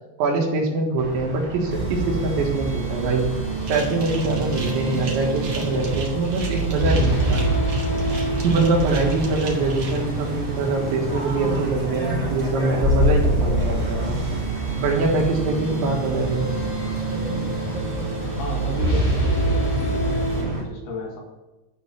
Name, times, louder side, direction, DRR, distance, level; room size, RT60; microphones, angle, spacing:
voice 1, 0.2-3.3 3.7-7.4 8.4-14.2 14.8-16.5, right 3 dB, 85° right, 0 dB, 4.0 m, -24 dB
sound 1, 1.0-20.6, right 2 dB, 30° right, 2.1 m, -33 dB
sound 2, 1.7-20.4, right 1 dB, 75° left, 0.5 m, -25 dB
sound 3, 3.6-10.0, right 4 dB, 45° right, 2.1 m, -38 dB
voice 2, 18.4-21.2, left 2 dB, 55° left, -1 dB, 3.0 m, -33 dB
13.0 x 4.3 x 7.4 m, 1.1 s
omnidirectional pair, 5.1 m